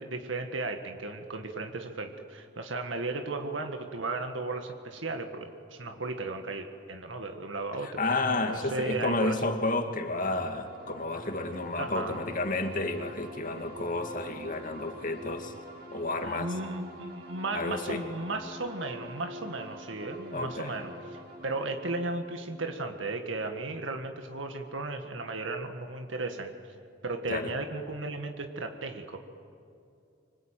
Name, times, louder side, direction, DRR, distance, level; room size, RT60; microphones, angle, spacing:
voice 1, 0.0-8.0 8.5-9.4 11.8-12.2 16.2-26.5 27.0-29.2, right 2 dB, 75° right, 5 dB, 1.8 m, -35 dB
voice 2, 7.8-15.5 15.9-16.5 17.5-18.0 20.3-20.7 27.3-27.5, left 2 dB, 45° left, 5 dB, 2.2 m, -31 dB
sound 1, 10.3-23.8, equal, 50° right, 3.3 m, -46 dB
25.5 x 24.5 x 9.1 m, 2.6 s
head